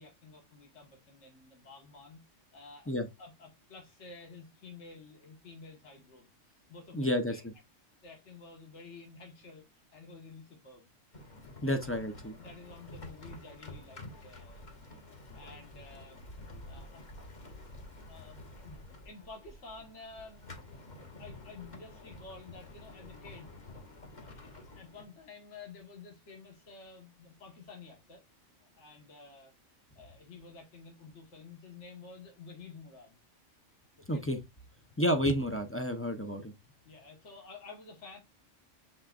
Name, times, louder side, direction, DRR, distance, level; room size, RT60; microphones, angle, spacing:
voice 1, 0.0-2.2 2.5-6.3 6.7-7.4 8.0-10.9 11.4-14.8 15.3-16.2 16.7-17.0 18.1-20.5 21.2-23.5 24.2-24.3 24.7-28.2 28.6-29.5 29.9-33.2 34.0-34.2 36.8-38.2, left 4 dB, 65° left, 1.7 m, -51 dB
voice 2, 6.9-7.4 11.6-12.4 34.1-34.4 35.0-36.5, equal, 20° left, 0.3 m, -30 dB
sound 1, 11.1-25.0, left 2 dB, 40° left, 1.1 m, -49 dB
6.4 x 3.4 x 2.4 m
omnidirectional pair, 1.3 m